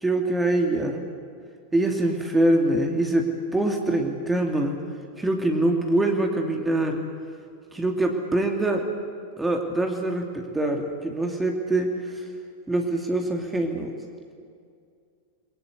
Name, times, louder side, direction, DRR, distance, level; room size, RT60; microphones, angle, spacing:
voice 1, 0.0-1.0 1.7-4.7 5.2-7.0 7.7-8.8 9.4-11.9 12.7-13.9, right 1 dB, 10° right, 2 dB, 2.9 m, -24 dB
30.0 x 22.5 x 8.4 m, 2.3 s
figure-of-eight pair, 90°, 0 cm